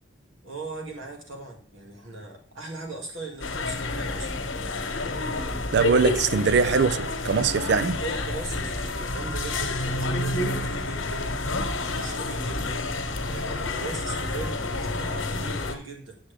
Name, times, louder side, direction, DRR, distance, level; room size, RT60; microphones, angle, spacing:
voice 1, 0.4-4.5 8.0-12.9 13.3-16.2, right 3 dB, 85° right, 2.2 m, -39 dB
sound 1, 3.4-15.8, left 2 dB, 85° left, 1.2 m, -29 dB
voice 2, 5.7-8.0, right 5 dB, 55° right, 0.3 m, -22 dB
8.6 x 7.1 x 3.4 m
head